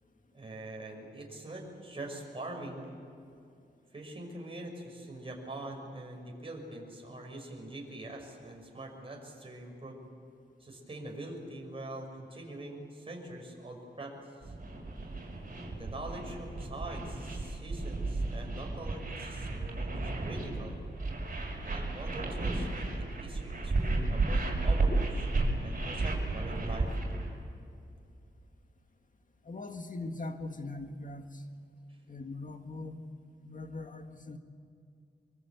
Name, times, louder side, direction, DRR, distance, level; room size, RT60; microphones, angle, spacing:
voice 1, 0.3-2.9 3.9-10.0 10.6-14.2 14.4-14.5 15.8-20.8 21.6-27.0 31.9-32.0, right 1 dB, 30° right, 0 dB, 5.8 m, -44 dB
sound 1, 14.4-27.3, right 2 dB, 45° right, 6.4 m, -33 dB
voice 2, 29.4-31.4 32.1-33.1 33.4-34.4, left 2 dB, 45° left, 6 dB, 1.9 m, -41 dB
25.0 x 24.0 x 8.3 m, 2.5 s
wide cardioid pair, 115°, 19 cm